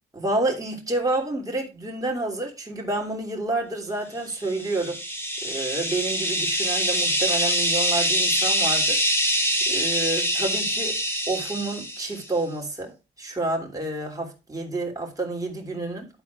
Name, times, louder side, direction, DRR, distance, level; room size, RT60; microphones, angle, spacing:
voice 1, 0.1-5.0 5.4-11.0 11.3-16.2, right 2 dB, 15° right, 3.2 m, -29 dB
sound 1, 4.4-12.2, equal, 10° left, 2.1 m, -24 dB
11.5 x 4.3 x 4.7 m
cardioid pair, 90°, 20 cm